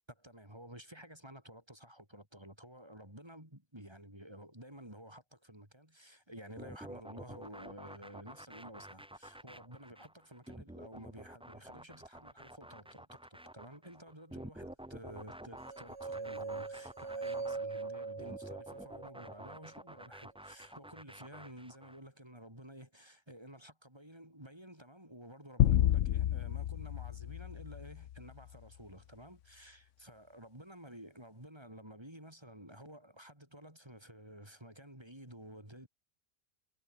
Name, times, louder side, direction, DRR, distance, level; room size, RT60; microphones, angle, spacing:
voice 1, 0.1-35.9, equal, 20° right, 5.3 m, -52 dB
sound 1, 6.6-22.0, right 1 dB, 5° right, 0.8 m, -50 dB
sound 2, 15.7-19.8, right 4 dB, 65° right, 2.5 m, -41 dB
sound 3, 25.6-28.2, left 12 dB, 90° left, 1.0 m, -30 dB
omnidirectional pair, 1.2 m